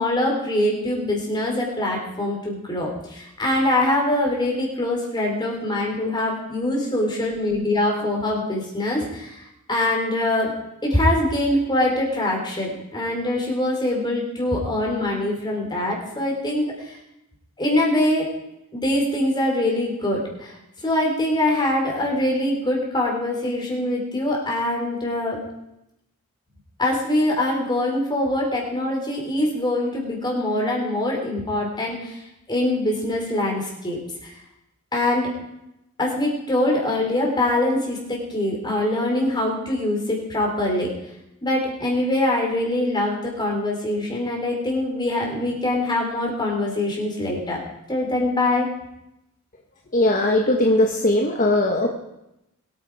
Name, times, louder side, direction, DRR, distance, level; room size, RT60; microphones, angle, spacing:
voice 1, 0.0-9.4 9.7-10.5 10.8-17.0 17.6-18.3 18.7-20.5 20.8-25.4 26.8-32.2 32.5-34.4 34.9-35.4 36.0-40.9 41.4-47.6 47.9-48.7, left 1 dB, 20° left, -1 dB, 3.8 m, -23 dB
voice 2, 49.9-51.9, left 1 dB, 35° left, 2 dB, 1.2 m, -19 dB
22.5 x 9.2 x 4.8 m, 0.88 s
head